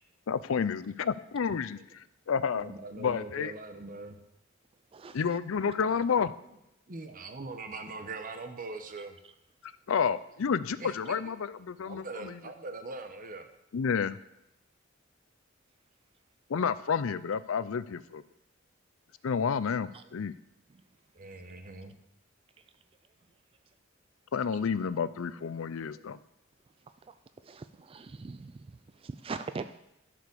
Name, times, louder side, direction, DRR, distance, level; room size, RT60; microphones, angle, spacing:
voice 1, 0.3-2.7 3.0-3.5 5.1-6.3 9.6-12.4 13.7-14.2 16.5-18.2 19.2-20.3 24.3-26.2, left 6 dB, 90° left, 16 dB, 0.5 m, -30 dB
voice 2, 2.5-4.2 6.9-9.2 10.8-11.3 11.8-13.5 20.0-20.2 21.1-22.0 24.9-25.2 25.6-26.2, right 3 dB, 45° right, 8 dB, 1.0 m, -42 dB
voice 3, 27.5-28.5 29.0-29.8, right 4 dB, 30° right, 11 dB, 0.3 m, -40 dB
11.5 x 5.1 x 6.8 m, 0.85 s
head